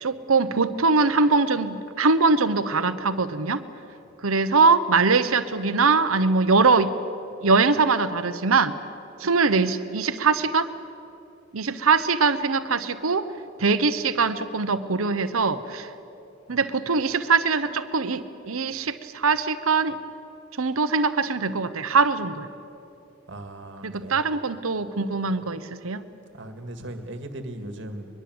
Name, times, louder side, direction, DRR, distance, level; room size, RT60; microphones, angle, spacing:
voice 1, 0.0-3.6 4.2-6.9 7.4-8.7 9.2-10.7 11.5-13.3 13.6-15.9 16.5-20.0 20.6-22.5 23.8-26.0, right 4 dB, 80° right, 11 dB, 1.0 m, -22 dB
voice 2, 23.3-24.2 26.3-28.1, right 1 dB, 60° right, 7 dB, 2.0 m, -37 dB
22.5 x 22.0 x 8.0 m, 2.7 s
head